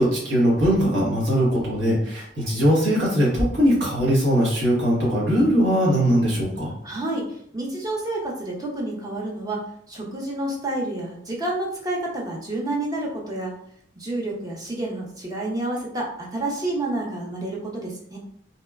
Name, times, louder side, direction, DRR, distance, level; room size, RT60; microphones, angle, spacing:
voice 1, 0.0-6.7, equal, 65° right, -6 dB, 1.0 m, -20 dB
voice 2, 6.8-13.5 14.0-18.2, right 2 dB, 20° right, -2 dB, 0.5 m, -29 dB
2.8 x 2.2 x 2.3 m, 0.68 s
head